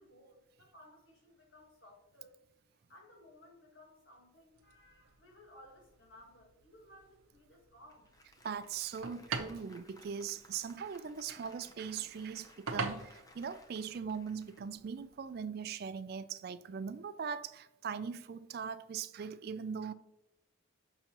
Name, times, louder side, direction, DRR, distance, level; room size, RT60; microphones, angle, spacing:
voice 1, 0.0-2.4 2.9-8.1, left 1 dB, 60° left, 1.6 m, -59 dB
sound 1, 4.5-15.4, right 4 dB, 85° right, 0.8 m, -46 dB
Applause, 7.9-15.5, left 1 dB, 15° left, 0.5 m, -61 dB
voice 2, 8.4-19.9, right 6 dB, 50° right, 0.3 m, -40 dB
6.8 x 5.7 x 2.9 m
head